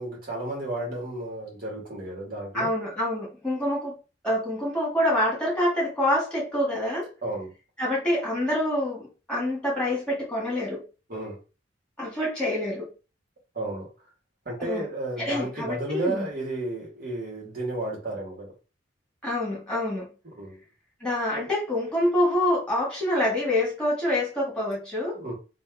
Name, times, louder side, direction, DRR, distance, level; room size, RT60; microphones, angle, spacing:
voice 1, 0.0-2.7 7.2-7.5 11.1-11.4 13.5-13.9 14.5-18.5 20.4-20.6 25.1-25.3, right 2 dB, 50° right, -3 dB, 2.0 m, -32 dB
voice 2, 2.5-3.9 4.2-7.1 7.8-10.8 12.0-12.9 14.6-14.9 15.2-16.3 19.2-20.1 21.0-25.2, left 1 dB, 5° left, -4 dB, 1.8 m, -26 dB
3.4 x 2.7 x 3.5 m, 0.33 s
head